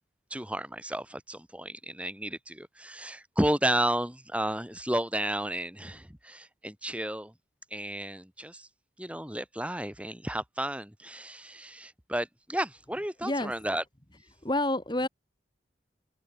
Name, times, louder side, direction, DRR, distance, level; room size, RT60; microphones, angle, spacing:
voice 1, 0.3-7.3 7.7-8.7 9.0-13.8, right 1 dB, 5° right, 6.0 m, -32 dB
voice 2, 13.2-13.5 14.4-15.1, left 1 dB, 25° left, 2.0 m, -28 dB
open air
head